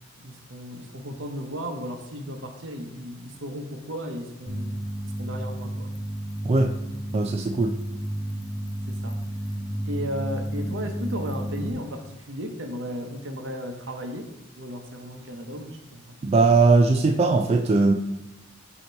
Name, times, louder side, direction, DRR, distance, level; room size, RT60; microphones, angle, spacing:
voice 1, 0.2-4.8 5.0-5.9 8.9-9.2 9.8-16.0, equal, 70° right, 5 dB, 0.8 m, -35 dB
sound 1, 4.5-11.7, right 1 dB, 20° left, 0.6 m, -32 dB
voice 2, 7.1-7.8 16.2-17.9, right 3 dB, 30° right, 5 dB, 0.3 m, -19 dB
8.0 x 2.9 x 4.5 m, 0.92 s
head